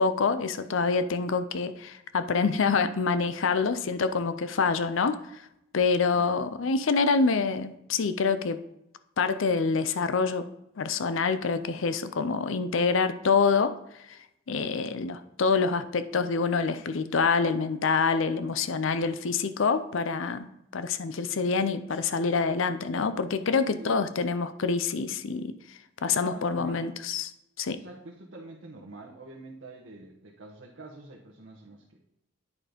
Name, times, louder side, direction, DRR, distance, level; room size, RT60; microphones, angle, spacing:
voice 1, 0.0-5.4 5.7-8.6 9.2-10.5 10.8-13.7 14.1-14.2 14.5-27.3 27.6-27.8, left 4 dB, 75° left, 12 dB, 0.5 m, -26 dB
voice 2, 6.1-6.4 23.8-24.1 26.2-26.8 27.7-32.0, right 2 dB, 70° right, -3 dB, 1.2 m, -46 dB
9.6 x 4.3 x 5.1 m, 0.83 s
head